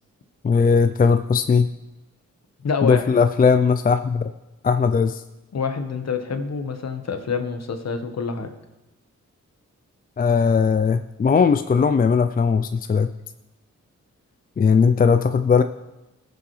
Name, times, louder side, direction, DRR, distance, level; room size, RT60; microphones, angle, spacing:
voice 1, 0.4-1.7 2.8-4.3 4.6-5.2 10.2-13.1 14.6-15.6, left 5 dB, 30° left, 9 dB, 0.4 m, -18 dB
voice 2, 2.6-3.2 4.9-5.0 5.5-8.5, left 5 dB, 60° left, 7 dB, 1.2 m, -27 dB
19.5 x 7.0 x 3.2 m, 0.98 s
cardioid pair, 85°, 29 cm